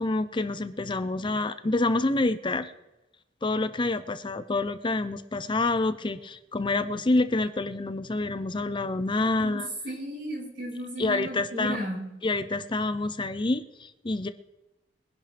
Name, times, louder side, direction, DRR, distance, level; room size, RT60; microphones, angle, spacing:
voice 1, 0.0-2.7 3.4-9.7 11.0-11.8 12.2-14.3, left 2 dB, 30° left, 12 dB, 0.6 m, -27 dB
voice 2, 9.4-12.0, right 1 dB, 75° right, -3 dB, 5.8 m, -34 dB
22.5 x 10.5 x 3.4 m, 0.97 s
head